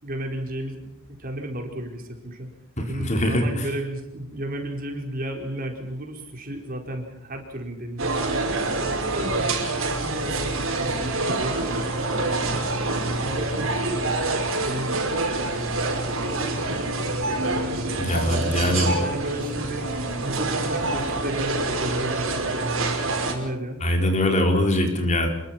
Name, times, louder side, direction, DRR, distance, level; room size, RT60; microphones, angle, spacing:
voice 1, 0.0-2.5 2.9-8.2 8.8-12.7 13.2-16.6 17.5-19.9 20.2-23.8, right 1 dB, 45° right, 3 dB, 4.7 m, -34 dB
voice 2, 2.8-3.6 18.0-19.0 23.8-25.3, left 1 dB, 35° left, 3 dB, 4.4 m, -22 dB
sound 1, 8.0-23.3, right 2 dB, 75° right, 5.3 m, -26 dB
27.5 x 23.0 x 5.9 m, 0.88 s
head